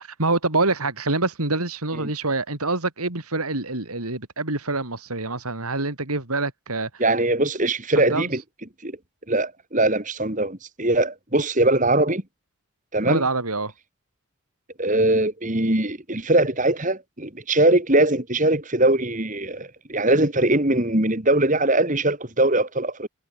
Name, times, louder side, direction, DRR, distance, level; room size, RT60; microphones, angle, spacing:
voice 1, 0.2-6.9 8.0-8.3 13.0-13.7, right 3 dB, 85° right, 3.7 m, -26 dB
voice 2, 7.0-8.4 8.8-9.0 9.3-12.2 12.9-13.2 14.8-23.1, right 2 dB, 35° right, 2.8 m, -21 dB
head